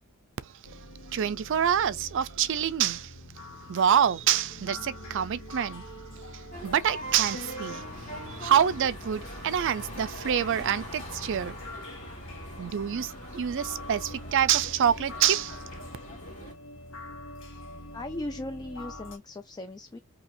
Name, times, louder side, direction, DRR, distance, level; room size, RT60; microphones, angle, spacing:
sound 1, 0.6-19.1, equal, 80° left, 0.9 m, -46 dB
voice 1, 1.1-3.1 3.7-5.9 6.3-11.6 12.6-15.6, right 9 dB, 60° right, 0.4 m, -26 dB
sound 2, 3.4-19.2, left 4 dB, 65° left, 1.2 m, -48 dB
sound 3, 6.5-16.5, equal, 35° left, 2.0 m, -42 dB
voice 2, 17.9-20.0, left 2 dB, 20° left, 0.4 m, -37 dB
4.3 x 2.8 x 2.5 m
head